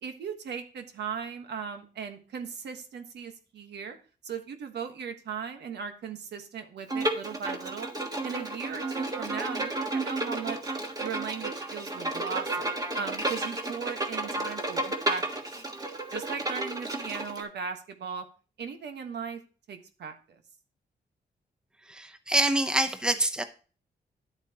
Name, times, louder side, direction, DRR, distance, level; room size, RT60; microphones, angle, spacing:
voice 1, 0.0-4.0 4.2-7.9 8.2-10.7 11.0-12.7 13.0-15.2 16.1-18.2 18.6-19.4 19.7-20.2, right 6 dB, 85° right, 6 dB, 1.4 m, -37 dB
Bowed string instrument, 6.9-17.4, right 2 dB, 20° right, 1.4 m, -32 dB
voice 2, 21.9-23.4, right 1 dB, 5° right, 9 dB, 0.8 m, -26 dB
10.5 x 8.2 x 2.9 m, 0.37 s
wide cardioid pair, 125°, 17 cm